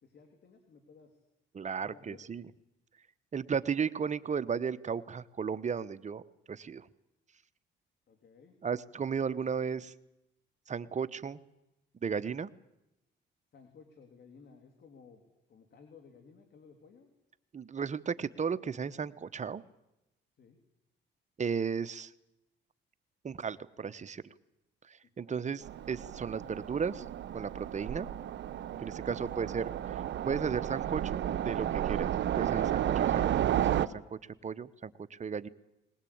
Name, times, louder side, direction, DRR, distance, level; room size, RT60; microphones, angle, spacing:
voice 1, 0.0-1.2 1.8-2.2 8.1-8.6 13.5-15.2 15.5-17.1 20.4-20.6 25.0-25.4 25.8-26.1 29.0-29.5, left 5 dB, 55° left, 5 dB, 3.4 m, -57 dB
voice 2, 1.5-2.4 3.3-6.9 8.6-9.9 10.7-11.4 12.0-12.5 17.5-19.6 21.4-22.1 23.2-24.2 24.9-27.0 27.3-28.1 28.8-32.1 32.4-35.5, right 6 dB, 35° right, 13 dB, 1.0 m, -35 dB
Train, 25.6-33.9, right 11 dB, 65° right, 0.9 m, -32 dB
21.0 x 20.5 x 8.7 m, 0.90 s
cardioid pair, 90°, 20 cm